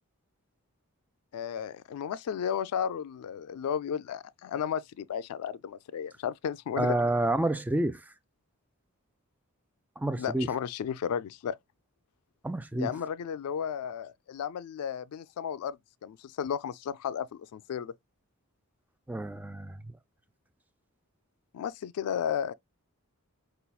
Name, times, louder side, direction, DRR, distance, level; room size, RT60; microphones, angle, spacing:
voice 1, 1.3-7.0 10.2-11.6 12.8-15.8 16.0-17.9 21.5-22.5, left 8 dB, 85° left, 0.3 m, -33 dB
voice 2, 6.8-8.0 10.0-10.5 12.4-12.9 19.1-19.9, right 1 dB, 5° right, 0.3 m, -29 dB
5.5 x 2.3 x 2.3 m
head